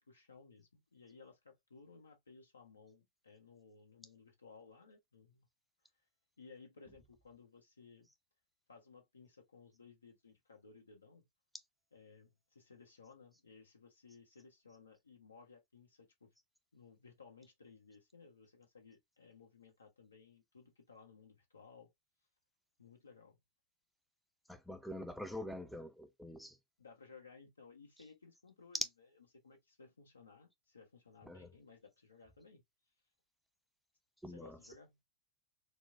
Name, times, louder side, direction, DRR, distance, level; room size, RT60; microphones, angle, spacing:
voice 1, 0.0-5.4 6.4-8.1 8.7-11.3 11.9-16.3 16.7-21.9 22.8-23.4 26.8-28.8 29.3-32.6 34.3-35.0, left 4 dB, 75° left, 1.1 m, -59 dB
voice 2, 24.5-26.6 31.2-31.5 34.2-34.6, left 1 dB, ahead, 0.5 m, -46 dB
4.3 x 2.1 x 2.5 m
figure-of-eight pair, 90°, 0 cm